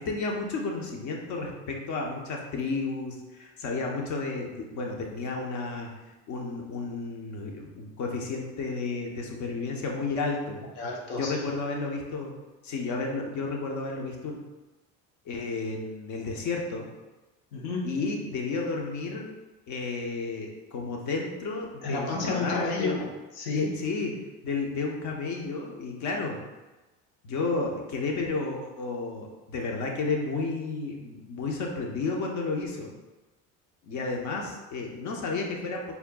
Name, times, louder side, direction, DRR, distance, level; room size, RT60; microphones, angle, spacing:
voice 1, 0.0-5.9 6.3-10.6 11.2-12.3 12.6-14.4 15.2-16.9 17.8-19.3 19.7-23.0 23.5-24.1 24.4-26.4 27.2-32.9 33.9-35.9, left 3 dB, 60° left, 0 dB, 1.0 m, -32 dB
voice 2, 10.8-11.4 17.5-17.9 21.8-23.7, left 3 dB, 80° left, -2 dB, 1.0 m, -31 dB
4.4 x 4.1 x 2.3 m, 1.1 s
supercardioid pair, 105°, 33 cm